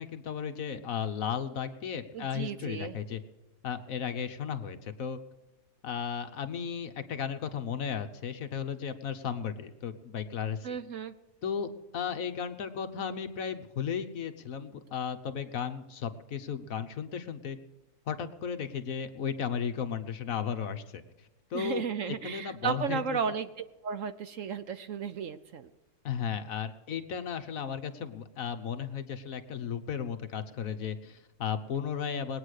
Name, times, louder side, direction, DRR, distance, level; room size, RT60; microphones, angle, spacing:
voice 1, 0.0-3.2 3.6-5.2 5.8-10.8 11.4-17.6 18.1-21.0 21.5-23.2 26.0-32.4, left 7 dB, 60° left, 8 dB, 1.3 m, -35 dB
voice 2, 2.1-3.0 10.6-11.1 21.5-23.5 23.8-25.7, right 6 dB, 60° right, 11 dB, 1.0 m, -34 dB
20.5 x 9.1 x 6.5 m, 1.1 s
omnidirectional pair, 1.7 m